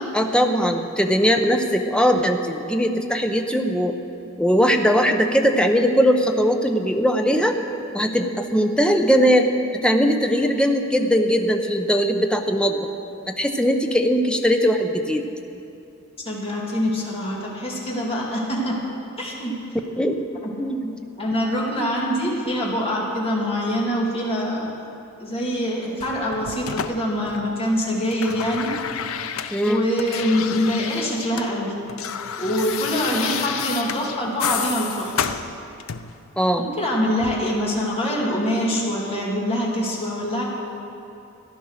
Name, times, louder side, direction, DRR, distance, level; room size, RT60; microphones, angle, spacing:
voice 1, 0.1-3.9 4.4-7.6 7.9-12.9 13.3-15.2 20.0-20.1 20.6-20.9 29.5-29.9 36.4-36.7, equal, 5° left, 4 dB, 0.7 m, -20 dB
voice 2, 16.2-18.8 19.2-19.5 20.4-20.5 21.2-24.7 25.2-28.7 29.7-31.7 32.4-35.3 36.6-40.5, equal, 30° left, -4 dB, 2.6 m, -24 dB
sound 1, 26.0-27.7 28.0-31.5 31.8-36.2 37.2-37.4, left 8 dB, 85° left, 0.6 m, -30 dB
14.5 x 10.5 x 6.5 m, 2.7 s
head